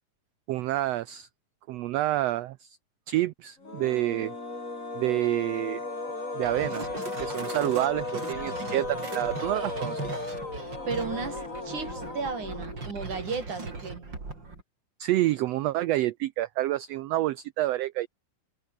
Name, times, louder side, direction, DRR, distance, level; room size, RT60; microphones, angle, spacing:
voice 1, 0.5-1.3 1.7-2.8 3.1-4.3 4.9-5.8 6.3-6.8 7.2-10.1 15.0-18.1, right 15 dB, 90° right, 1.4 m, -28 dB
sound 1, 3.6-13.0, left 3 dB, 25° left, 4.3 m, -36 dB
sound 2, 6.4-14.6, right 3 dB, 35° right, 5.6 m, -39 dB
voice 2, 10.9-14.1, right 5 dB, 70° right, 6.5 m, -34 dB
omnidirectional pair, 3.6 m